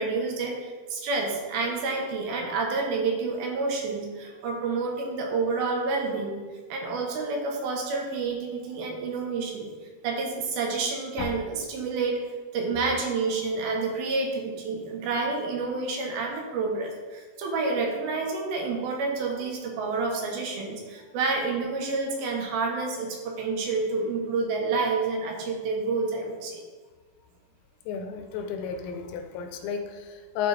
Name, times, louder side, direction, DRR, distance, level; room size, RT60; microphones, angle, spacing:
voice 1, 0.0-6.4 6.7-9.7 10.0-12.2 12.5-26.6, right 4 dB, 75° right, 1 dB, 2.7 m, -29 dB
voice 2, 27.9-30.5, left 7 dB, 85° left, 5 dB, 2.7 m, -32 dB
12.5 x 4.4 x 3.3 m, 1.4 s
omnidirectional pair, 4.5 m